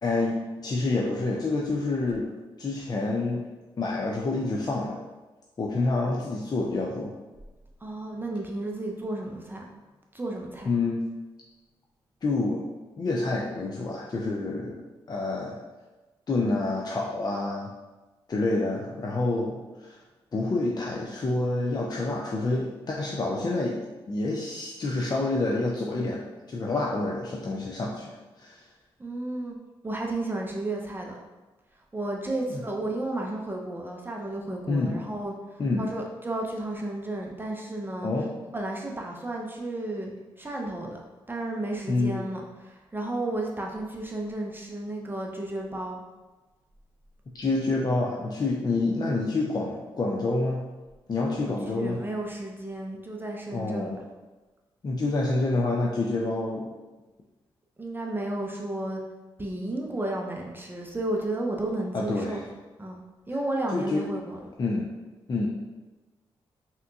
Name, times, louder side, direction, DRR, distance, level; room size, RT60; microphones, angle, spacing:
voice 1, 0.0-2.3 2.6-3.5 3.8-5.0 5.6-7.1 10.7-11.0 12.2-12.6 13.0-15.6 16.3-17.7 18.3-20.0 20.3-28.6 34.7-35.0 35.6-35.9 38.0-38.3 41.9-42.2 47.3-50.6 51.1-52.0 53.5-54.0 54.8-56.7 61.9-62.4 63.7-64.1 64.6-64.9 65.3-65.5, left 2 dB, 40° left, -2 dB, 0.4 m, -28 dB
voice 2, 7.8-9.6 10.1-10.7 29.0-29.6 29.8-31.2 31.9-38.1 38.5-41.0 41.3-46.0 51.4-53.9 57.8-59.0 59.4-62.4 62.8-63.0 63.3-64.4, right 1 dB, 20° right, 0 dB, 0.5 m, -33 dB
3.5 x 2.9 x 2.3 m, 1.2 s
supercardioid pair, 50°, 11 cm